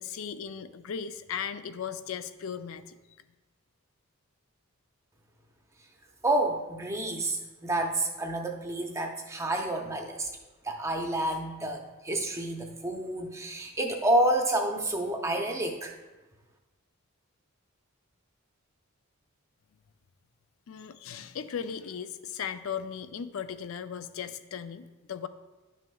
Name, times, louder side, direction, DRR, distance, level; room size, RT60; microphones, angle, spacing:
voice 1, 0.0-3.0 20.7-25.3, left 7 dB, 70° left, 12 dB, 0.4 m, -37 dB
voice 2, 6.2-10.3 10.6-15.9, right 1 dB, 15° right, 2 dB, 0.6 m, -29 dB
11.0 x 6.2 x 2.3 m, 1.1 s
head